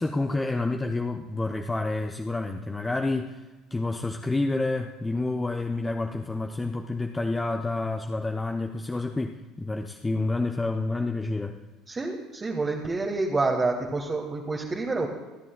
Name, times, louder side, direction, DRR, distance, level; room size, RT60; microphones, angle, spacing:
voice 1, 0.0-3.4 3.7-11.6, left 2 dB, 15° left, 5 dB, 0.7 m, -29 dB
voice 2, 11.9-15.1, right 3 dB, 25° right, -1 dB, 1.4 m, -28 dB
26.0 x 10.5 x 2.3 m, 1.2 s
figure-of-eight pair, 60°, 0 cm